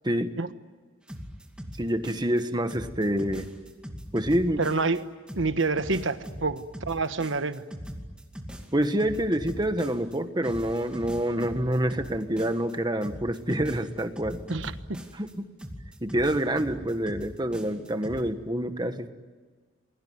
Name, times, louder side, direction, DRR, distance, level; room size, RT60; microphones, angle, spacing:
sound 1, 1.1-2.4 2.7-5.0 5.3-10.2 10.4-12.7 13.0-15.3 15.6-18.2, equal, 5° right, 2.4 m, -40 dB
voice 1, 1.8-3.5 4.1-4.6 8.7-14.4 15.1-15.5 16.0-19.1, right 1 dB, 20° right, 8 dB, 1.4 m, -27 dB
voice 2, 4.6-5.0 5.4-7.6 14.5-15.0, right 3 dB, 75° right, 11 dB, 1.2 m, -27 dB
28.0 x 22.0 x 9.5 m, 1.4 s
head